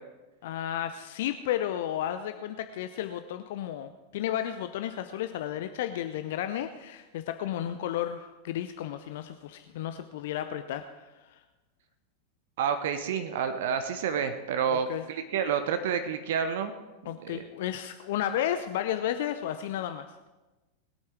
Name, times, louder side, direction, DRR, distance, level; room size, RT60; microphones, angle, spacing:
voice 1, 0.4-10.8 11.2-11.4 14.7-15.0 17.0-20.1, left 11 dB, 55° left, 9 dB, 0.6 m, -33 dB
voice 2, 12.6-16.7 17.0-17.5, right 7 dB, 55° right, 9 dB, 1.0 m, -29 dB
21.0 x 8.7 x 4.6 m, 1.1 s
figure-of-eight pair, 90°, 0 cm